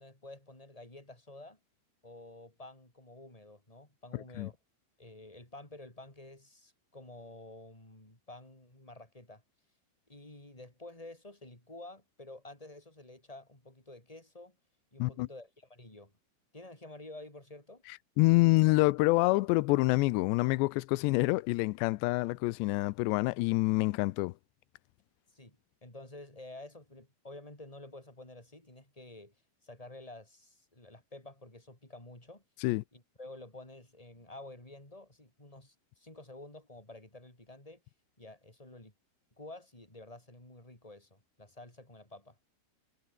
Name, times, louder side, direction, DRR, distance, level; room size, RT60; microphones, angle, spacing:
voice 1, 0.0-1.6 2.0-4.6 5.0-9.4 10.1-14.6 14.9-16.1 16.5-17.8 25.3-29.4 29.6-32.4 32.9-37.8 38.2-38.9 39.4-42.4, left 2 dB, 10° left, 5.5 m, -50 dB
voice 2, 18.2-24.3 32.6-32.8, left 22 dB, 90° left, 2.9 m, -27 dB
omnidirectional pair, 4.9 m